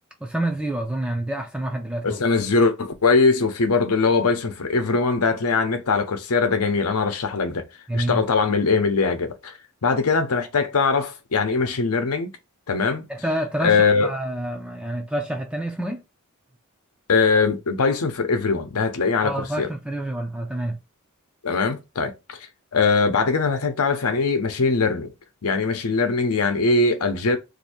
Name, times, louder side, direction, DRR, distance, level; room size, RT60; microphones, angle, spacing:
voice 1, 0.2-2.2 7.9-8.2 13.1-16.0 19.2-20.8, right 1 dB, 5° right, 0.4 m, -28 dB
voice 2, 2.0-7.6 7.9-12.3 12.7-13.0 13.6-14.1 17.1-19.7 21.4-22.4 22.7-25.1 25.4-27.4, left 4 dB, 85° left, 0.8 m, -21 dB
2.7 x 2.6 x 4.2 m
head